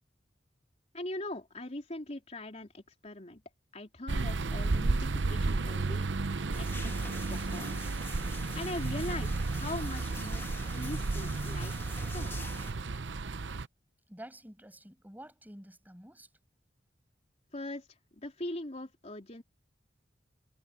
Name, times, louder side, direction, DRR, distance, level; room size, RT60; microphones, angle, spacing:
voice 1, 0.9-3.4 3.7-6.1 6.6-6.9 7.3-7.9 8.5-10.5 10.8-11.8 12.1-12.3 17.5-19.4, left 1 dB, 35° left, 3.7 m, -41 dB
sound 1, 4.1-13.7, right 3 dB, 70° right, 0.7 m, -33 dB
sound 2, 6.5-12.7, left 3 dB, 15° left, 2.0 m, -47 dB
voice 2, 14.1-16.3, right 1 dB, 10° right, 7.2 m, -49 dB
head